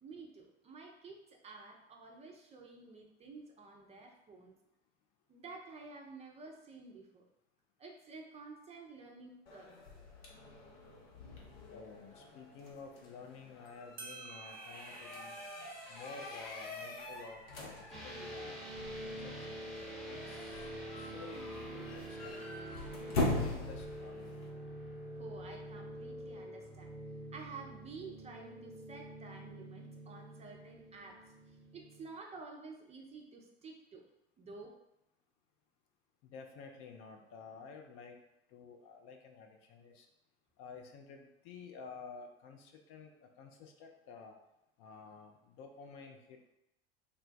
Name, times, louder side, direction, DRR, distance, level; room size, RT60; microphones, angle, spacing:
voice 1, 0.0-4.5 5.3-7.2 7.8-9.7 25.1-26.9 27.3-31.2 31.5-34.0 34.4-34.7, right 4 dB, 20° right, 1 dB, 0.5 m, -51 dB
sound 1, 9.5-24.5, left 2 dB, 65° left, 0.9 m, -42 dB
voice 2, 11.7-15.4 15.9-18.6 19.0-19.8 20.1-22.4 23.0-24.4 36.2-38.2 38.5-40.1 40.6-44.4 44.8-46.4, left 5 dB, 45° left, 4 dB, 0.5 m, -52 dB
sound 2, 13.6-13.7 14.0-19.1, right 5 dB, 90° right, 0.5 m, -54 dB
sound 3, 17.9-32.1, right 1 dB, ahead, 1.0 m, -46 dB
3.3 x 2.2 x 3.8 m, 0.85 s
figure-of-eight pair, 75°, 32 cm